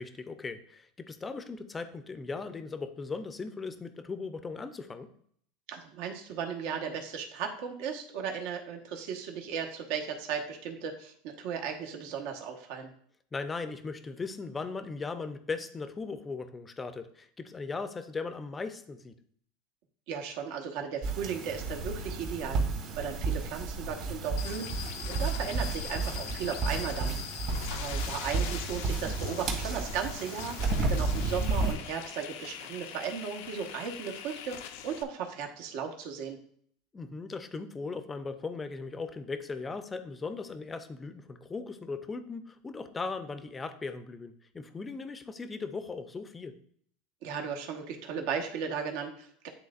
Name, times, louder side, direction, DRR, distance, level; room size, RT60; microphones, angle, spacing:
voice 1, 0.0-5.1 13.3-19.2 36.9-46.6, left 4 dB, 15° left, 9 dB, 0.6 m, -38 dB
voice 2, 5.7-12.9 20.1-22.6 23.0-27.2 27.7-36.4 47.2-49.5, right 7 dB, 65° right, 2 dB, 1.2 m, -36 dB
sound 1, 21.0-31.7, right 3 dB, 50° right, 2.1 m, -32 dB
sound 2, 24.4-35.0, left 10 dB, 75° left, 0.6 m, -42 dB
11.0 x 3.7 x 2.5 m, 0.63 s
supercardioid pair, 125°, 0 cm